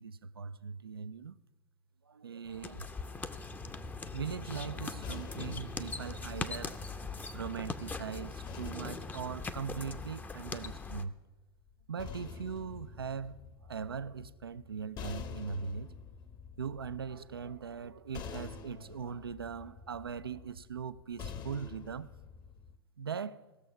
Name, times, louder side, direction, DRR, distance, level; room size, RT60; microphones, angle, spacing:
voice 1, 0.0-1.4 2.1-2.9 4.1-6.9 7.3-11.1 11.9-13.4 13.7-15.9 16.6-22.1 23.0-23.4, right 6 dB, 85° right, 0.5 m, -40 dB
sound 1, 2.5-11.1, left 3 dB, 15° left, 0.7 m, -41 dB
sound 2, 5.0-7.5 8.5-10.7 11.7-22.8, left 6 dB, 35° left, 1.0 m, -48 dB
17.5 x 6.9 x 5.6 m
figure-of-eight pair, 85°, 12 cm